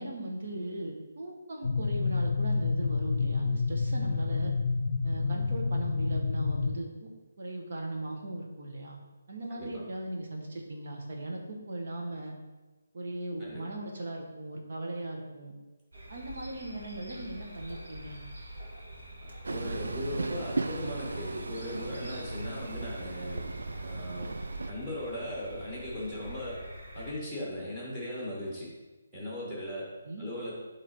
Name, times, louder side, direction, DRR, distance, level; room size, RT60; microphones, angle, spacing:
voice 1, 0.0-4.5 5.0-7.1 7.4-9.0 9.3-12.3 12.9-15.5 16.1-18.2 30.0-30.2, right 1 dB, 45° right, 0 dB, 1.1 m, -38 dB
sound 1, 1.6-6.8, left 4 dB, 70° left, 0.3 m, -29 dB
voice 2, 9.5-9.8 13.4-13.6 19.5-23.4 23.8-24.3 24.7-26.6 26.9-28.7 29.1-29.9 30.2-30.6, left 1 dB, 5° right, -6 dB, 1.6 m, -38 dB
sound 2, 15.9-27.1, equal, 65° right, 1.9 m, -46 dB
Train, 19.4-24.7, right 3 dB, 90° right, 0.4 m, -36 dB
7.9 x 3.3 x 4.3 m, 1.2 s
hypercardioid pair, 175°, 0 cm